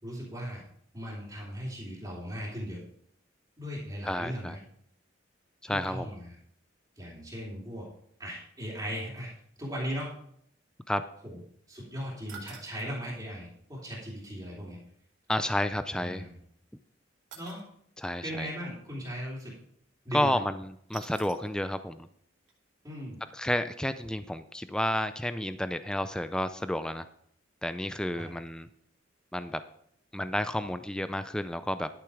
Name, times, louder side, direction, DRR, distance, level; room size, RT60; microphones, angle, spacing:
voice 1, 0.0-0.6 0.9-2.8 3.6-4.6 5.6-6.3 7.0-7.9 8.2-9.3 9.6-10.1 11.2-11.4 11.7-14.8 15.9-16.4 17.3-17.6 18.2-19.5 20.0-20.4 22.8-23.2 28.1-28.3, equal, 20° right, -7 dB, 2.9 m, -38 dB
voice 2, 4.0-4.6 5.6-6.1 10.9-11.0 15.3-16.2 18.0-18.5 20.1-22.1 23.3-27.1 27.6-28.7 29.3-29.6 30.1-31.9, left 1 dB, 5° left, 11 dB, 0.3 m, -31 dB
sound 1, 12.3-12.9 15.3-15.4 17.3-17.6 20.9-21.6 22.0-22.1 22.5-22.6, right 6 dB, 85° right, 2.7 m, -48 dB
11.5 x 7.0 x 4.8 m, 0.66 s
head